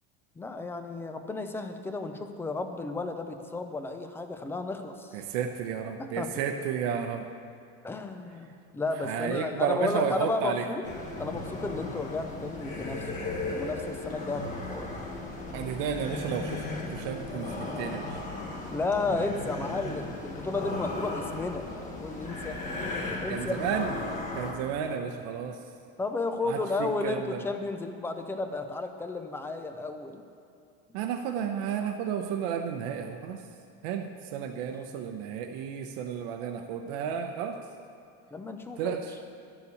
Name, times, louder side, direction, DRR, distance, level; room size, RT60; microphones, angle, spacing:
voice 1, 0.4-5.2 6.0-6.4 7.8-10.8 11.2-15.0 18.7-22.6 23.2-23.6 26.0-30.2 34.6-34.8 38.3-39.0, left 3 dB, 10° left, 7 dB, 0.4 m, -33 dB
voice 2, 5.1-7.3 9.0-10.7 15.5-18.2 23.3-23.9 24.3-25.6 26.4-27.4 30.9-33.4 33.8-37.6 38.8-39.1, right 7 dB, 65° right, 4 dB, 0.8 m, -32 dB
sound 1, 10.8-24.5, left 2 dB, 25° left, 1.2 m, -36 dB
12.0 x 7.1 x 8.3 m, 2.4 s
cardioid pair, 175°, 31 cm